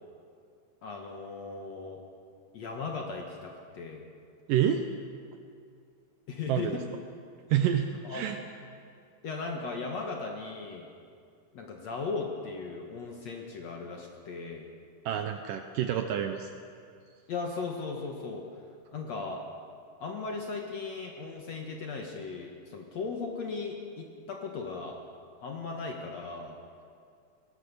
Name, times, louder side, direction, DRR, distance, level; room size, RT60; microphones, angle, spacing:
voice 1, 0.8-2.0 2.5-4.0 6.3-6.8 8.0-8.3 9.2-10.9 11.5-14.7 17.3-18.4 18.9-19.4 20.0-24.9 25.4-26.6, left 4 dB, 55° left, 1 dB, 2.4 m, -37 dB
voice 2, 4.5-4.8 6.5-6.8 7.5-8.4 15.1-16.5, right 10 dB, 75° right, 6 dB, 2.3 m, -28 dB
21.5 x 18.5 x 6.9 m, 2.4 s
omnidirectional pair, 4.1 m